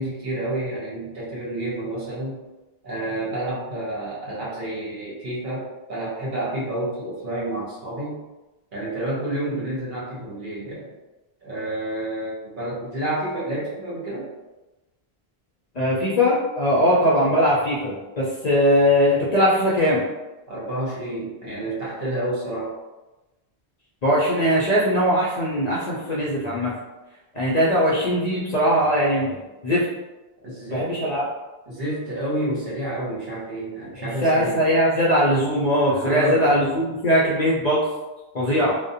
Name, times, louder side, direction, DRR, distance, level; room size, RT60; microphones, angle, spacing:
voice 1, 0.0-2.4 2.8-8.2 8.7-10.9 11.4-14.3 20.5-22.7 30.4-30.9 31.7-34.6 35.9-36.6, right 1 dB, 55° right, -6 dB, 1.0 m, -29 dB
voice 2, 15.8-20.0 24.0-26.7 27.3-29.4 29.6-29.9 30.7-31.2 34.0-37.8 38.3-38.8, equal, 50° left, -6 dB, 0.5 m, -20 dB
2.4 x 2.1 x 2.6 m, 1.1 s
omnidirectional pair, 1.0 m